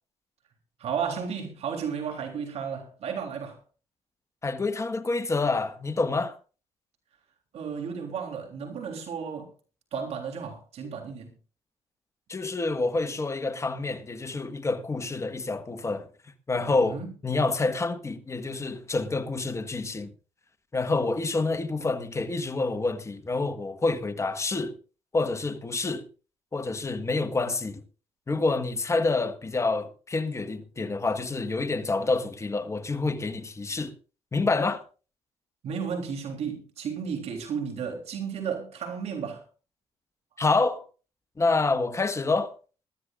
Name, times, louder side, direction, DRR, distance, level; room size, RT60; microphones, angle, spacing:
voice 1, 0.8-3.6 7.5-9.5 9.9-11.3 16.6-17.1 35.6-39.4, right 6 dB, 70° right, 3.4 m, -33 dB
voice 2, 4.4-6.4 12.3-16.1 16.5-20.1 20.7-24.7 25.1-26.1 26.5-27.8 28.3-33.9 34.3-34.8 40.4-40.8 41.4-42.5, left 3 dB, 25° left, 1.5 m, -27 dB
21.5 x 13.0 x 2.5 m
cardioid pair, 95°, 11 cm